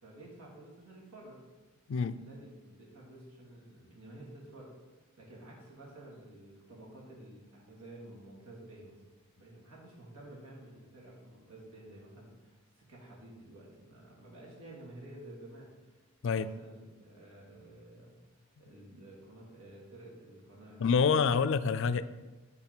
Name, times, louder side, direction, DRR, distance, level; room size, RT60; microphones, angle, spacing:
voice 1, 0.0-1.4 2.1-4.7 5.2-9.0 9.3-18.1 18.6-20.8, right 1 dB, 85° right, -3 dB, 2.4 m, -51 dB
voice 2, 1.9-2.2 16.2-16.5 20.8-22.0, left 5 dB, 60° left, 13 dB, 0.3 m, -27 dB
8.2 x 3.7 x 6.0 m, 1.2 s
head